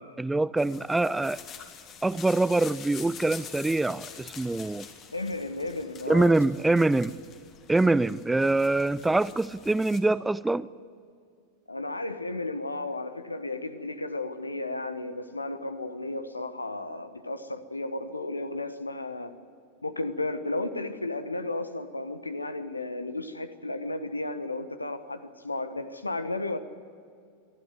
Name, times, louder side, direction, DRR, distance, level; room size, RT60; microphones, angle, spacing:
voice 1, 0.0-1.4 2.0-4.9 6.1-7.2 7.7-10.7, right 2 dB, 5° right, 18 dB, 0.4 m, -24 dB
sound 1, 0.6-10.0, left 7 dB, 30° left, 2.0 m, -46 dB
voice 2, 5.1-6.4 11.7-19.3 19.8-26.6, left 2 dB, 80° left, 11 dB, 1.2 m, -33 dB
26.5 x 12.0 x 9.6 m, 2.3 s
figure-of-eight pair, 90°, 0 cm